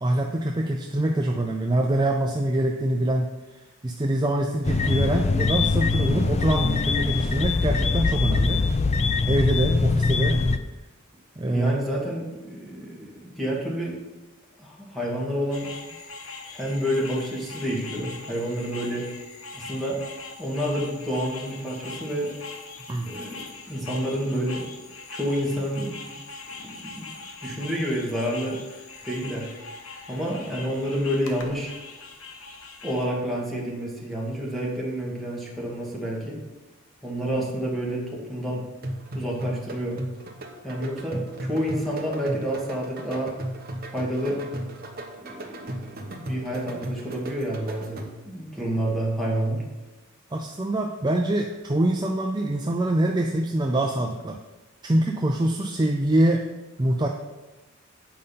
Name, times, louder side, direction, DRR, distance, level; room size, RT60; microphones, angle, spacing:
voice 1, 0.0-3.3 3.8-8.6 9.2-10.4 11.4-11.7 22.9-23.1 50.3-54.4 54.8-56.4 56.8-57.1, right 1 dB, 20° right, 2 dB, 0.5 m, -24 dB
sound 1, 4.6-10.6, left 3 dB, 30° left, 0.4 m, -23 dB
voice 2, 11.5-14.0 14.6-15.7 16.5-19.1 19.5-20.0 20.4-22.3 23.0-24.7 25.1-26.1 26.5-27.1 27.4-28.6 29.0-29.5 30.1-31.7 32.8-36.4 37.0-38.7 39.1-40.0 40.6-43.3 43.9-44.4 45.2-49.6, equal, ahead, -4 dB, 2.2 m, -29 dB
sound 2, 15.5-33.1, left 3 dB, 80° left, 1.2 m, -41 dB
sound 3, 38.8-48.4, right 1 dB, 45° right, 1.0 m, -36 dB
8.7 x 5.4 x 5.6 m, 1.1 s
head